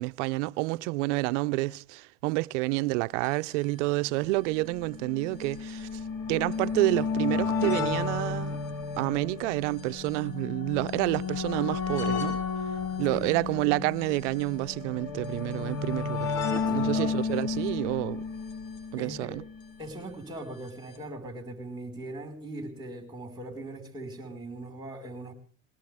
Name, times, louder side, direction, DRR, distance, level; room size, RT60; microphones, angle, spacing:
voice 1, 0.0-6.0 6.3-8.6 9.0-12.4 13.0-16.4 16.7-18.2 18.9-19.4, right 22 dB, 70° right, 0.7 m, -29 dB
sound 1, 3.2-3.3 3.5-3.6 4.5-19.7 20.7-20.8 20.9-21.0, left 5 dB, 65° left, 6.5 m, -32 dB
voice 2, 16.7-17.2 19.0-19.3 19.8-25.3, right 1 dB, 10° right, 5.0 m, -40 dB
21.0 x 18.0 x 3.6 m
supercardioid pair, 130°, 37 cm